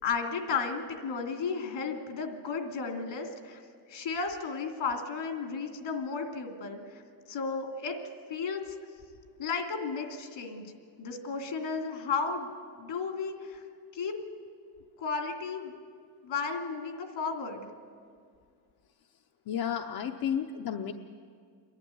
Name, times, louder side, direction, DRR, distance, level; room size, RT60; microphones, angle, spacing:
voice 1, 0.0-3.6 3.9-7.0 7.3-8.0 8.3-8.8 9.4-10.6 11.0-12.5 12.8-13.6 13.9-14.1 15.0-15.7 16.2-17.7, left 5 dB, 80° left, 3 dB, 2.8 m, -33 dB
voice 2, 19.5-20.9, left 8 dB, 55° left, 4 dB, 0.8 m, -32 dB
29.0 x 11.5 x 9.6 m, 2.2 s
cardioid pair, 135°, 45 cm